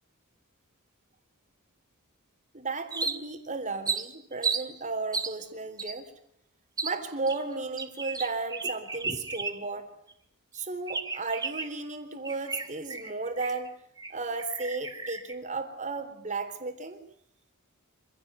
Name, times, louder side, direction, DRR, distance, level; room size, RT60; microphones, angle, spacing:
voice 1, 2.5-6.1 6.8-9.9 10.5-13.7 14.1-17.0, right 3 dB, 35° right, 7 dB, 3.7 m, -34 dB
sound 1, 2.9-3.5 3.9-4.7 5.1-5.3 5.8-5.9 6.8-7.0 7.3-9.8 10.1-10.2 10.9-11.8 12.3-13.7 14.0-14.1 14.4-15.3, right 4 dB, 15° right, 2.3 m, -33 dB
26.5 x 17.0 x 9.7 m, 0.70 s
head